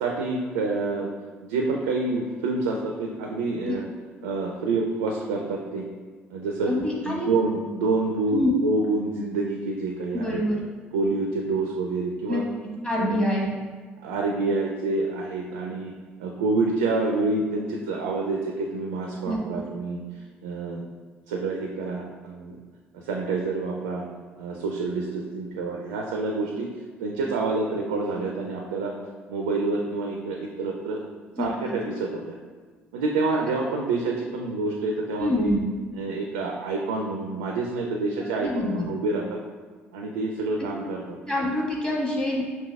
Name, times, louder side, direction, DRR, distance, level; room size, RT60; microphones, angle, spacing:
voice 1, 0.0-1.1 1.4-3.9 4.2-5.9 6.3-6.7 7.0-10.4 10.9-12.4 13.0-13.2 14.0-15.9 16.2-20.0 20.4-20.8 21.3-22.6 22.9-24.0 24.4-26.7 27.0-28.9 29.3-31.0 31.4-32.4 32.9-35.5 36.0-39.2 39.9-41.2, right 3 dB, 70° right, 1 dB, 0.3 m, -27 dB
voice 2, 6.7-7.4 8.3-8.5 10.1-10.6 12.3-12.4 12.8-13.5 19.2-19.4 31.4-31.7 35.2-35.6 38.4-38.9 41.3-42.4, left 1 dB, 15° left, -4 dB, 1.2 m, -26 dB
5.3 x 2.8 x 2.3 m, 1.5 s
figure-of-eight pair, 50°, 6 cm